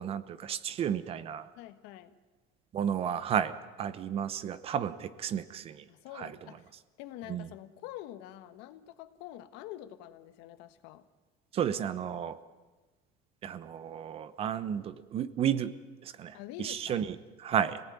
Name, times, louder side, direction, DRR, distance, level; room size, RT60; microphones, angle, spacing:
voice 1, 0.0-1.5 2.7-5.9 6.2-6.3 7.3-7.5 11.5-12.4 13.4-15.7 16.0-17.8, right 9 dB, 30° right, 15 dB, 0.9 m, -32 dB
voice 2, 1.6-2.2 5.9-6.7 7.0-11.0 16.3-17.0, left 13 dB, 65° left, 11 dB, 1.5 m, -46 dB
26.5 x 18.5 x 9.4 m, 1.3 s
cardioid pair, 175°, 19 cm